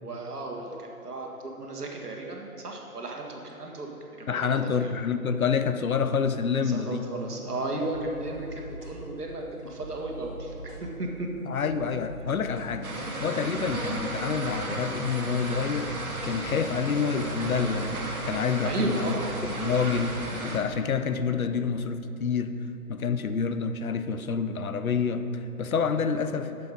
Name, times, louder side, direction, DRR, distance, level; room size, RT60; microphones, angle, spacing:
voice 1, 0.0-3.9 4.2-4.9 6.6-10.5 10.8-11.3 18.6-19.3, right 2 dB, 80° right, 1 dB, 1.7 m, -34 dB
voice 2, 4.3-7.0 11.5-12.9 13.2-15.9 16.2-18.0 18.2-19.1 19.6-22.5 22.9-26.6, left 6 dB, 65° left, 10 dB, 0.6 m, -28 dB
sound 1, 7.1-23.4, right 1 dB, 35° right, 1.7 m, -44 dB
sound 2, 12.8-20.6, right 2 dB, 65° right, 1.5 m, -34 dB
8.3 x 6.8 x 5.3 m, 2.8 s
hypercardioid pair, 175°, 46 cm